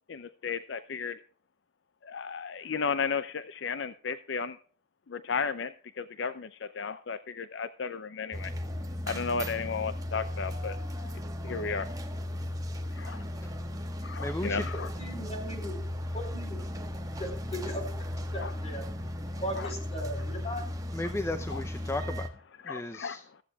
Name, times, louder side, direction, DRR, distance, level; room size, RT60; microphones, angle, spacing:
voice 1, 0.1-1.2 2.0-4.6 5.1-8.5 9.1-10.8 11.4-11.9 13.0-13.2 14.0-14.9 18.4-18.5 19.6-19.7 21.5-21.6 22.6-23.2, left 5 dB, 60° left, 13 dB, 0.5 m, -34 dB
sound 1, 8.3-22.3, left 1 dB, 15° right, 1.2 m, -36 dB
voice 2, 14.2-14.7 20.9-22.3 22.6-23.2, left 1 dB, 15° left, 7 dB, 0.5 m, -35 dB
voice 3, 15.0-15.7 16.1-16.6 17.2-18.8 19.4-20.7, equal, 30° left, 5 dB, 4.0 m, -38 dB
15.5 x 14.0 x 2.3 m, 0.43 s
head